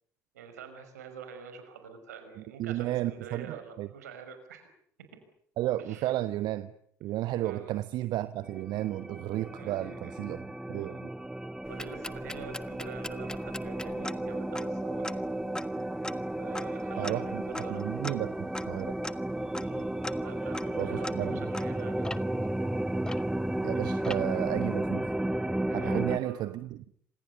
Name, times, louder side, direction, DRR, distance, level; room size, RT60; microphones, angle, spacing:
voice 1, 0.3-4.7 5.0-5.2 5.9-6.1 7.4-7.7 9.6-10.1 10.7-11.0 11.7-15.6 16.4-17.9 19.6-19.9 20.2-22.3 25.7-26.5, right 6 dB, 75° right, 5.6 m, -46 dB
voice 2, 2.6-3.9 5.6-6.7 7.0-11.1 17.0-17.4 17.7-18.9 20.8-21.5 23.6-25.1 25.7-26.9, right 14 dB, 55° right, 1.1 m, -33 dB
sound 1, 8.4-26.2, right 1 dB, 5° right, 1.5 m, -33 dB
sound 2, 11.6-23.7 24.0-24.5, left 1 dB, 10° left, 1.4 m, -42 dB
28.0 x 27.0 x 7.0 m
figure-of-eight pair, 55°, 9 cm